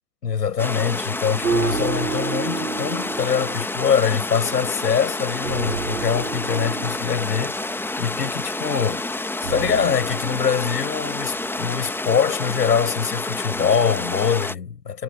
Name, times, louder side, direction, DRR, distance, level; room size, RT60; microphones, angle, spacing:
voice 1, 0.2-9.1 9.4-15.0, left 7 dB, 75° left, 6.3 m, -24 dB
sound 1, 0.6-14.6, left 2 dB, 5° left, 1.7 m, -29 dB
sound 2, 1.0-12.1, right 5 dB, 80° right, 7.0 m, -32 dB
figure-of-eight pair, 105°, 49 cm